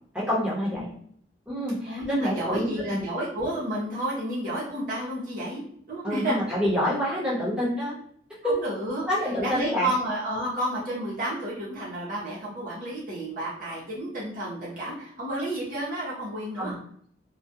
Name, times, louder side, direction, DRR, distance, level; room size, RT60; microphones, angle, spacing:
voice 1, 0.1-0.9 1.5-3.0 6.0-8.0 8.4-8.5 9.1-9.9 16.6-16.8, equal, 5° right, -8 dB, 1.0 m, -27 dB
voice 2, 1.8-6.4 8.4-9.0 9.4-16.7, right 1 dB, 45° right, -8 dB, 0.9 m, -31 dB
2.3 x 2.3 x 2.7 m, 0.63 s
head